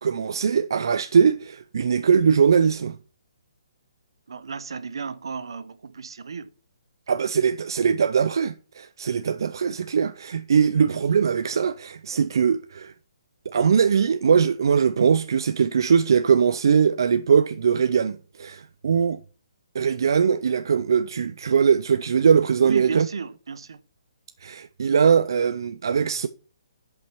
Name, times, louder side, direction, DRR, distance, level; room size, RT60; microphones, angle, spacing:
voice 1, 0.0-3.0 7.1-12.9 13.5-19.2 19.7-23.1 24.4-26.3, right 6 dB, 55° right, 0.5 m, -21 dB
voice 2, 4.3-6.5 22.6-23.8, right 5 dB, 75° right, 0.9 m, -33 dB
10.5 x 5.5 x 4.5 m
hypercardioid pair, 175°, 3 cm